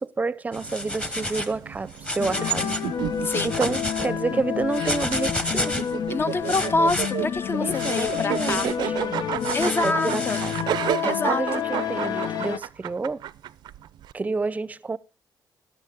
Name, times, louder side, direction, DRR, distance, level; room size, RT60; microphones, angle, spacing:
voice 1, 0.0-2.8 3.4-5.8 7.6-9.3 9.8-10.7 11.0-13.2 14.1-15.0, right 3 dB, 20° right, 0.6 m, -29 dB
sound 1, 0.5-1.6 1.9-2.9 3.2-4.1 4.7-5.9 6.4-7.1 7.8-8.8 9.4-10.6, left 1 dB, 15° left, 1.1 m, -30 dB
sound 2, 0.5-14.1, right 12 dB, 80° right, 0.6 m, -32 dB
sound 3, 2.2-12.6, left 9 dB, 65° left, 0.7 m, -29 dB
voice 2, 3.2-3.5 6.1-8.7 9.5-10.4 11.0-11.4, left 3 dB, 30° left, 0.7 m, -26 dB
18.0 x 11.0 x 3.6 m
cardioid pair, 125°, 7 cm